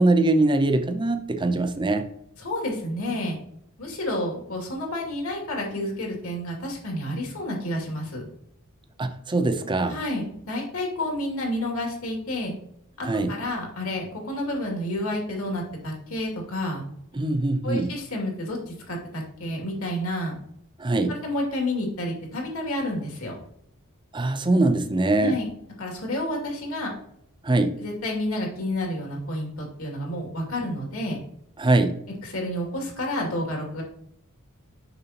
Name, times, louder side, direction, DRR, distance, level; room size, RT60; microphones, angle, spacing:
voice 1, 0.0-2.1 9.0-10.0 13.0-13.4 17.1-17.9 20.8-21.2 24.1-25.4 27.4-27.8 31.6-32.0, right 2 dB, 20° right, 8 dB, 0.6 m, -22 dB
voice 2, 2.4-3.4 3.8-8.2 9.9-12.5 13.0-16.8 17.6-20.4 21.1-23.4 25.2-25.5 25.8-26.9 27.8-31.2 32.2-33.8, left 1 dB, 70° left, 0 dB, 2.5 m, -30 dB
6.9 x 6.0 x 2.9 m, 0.72 s
head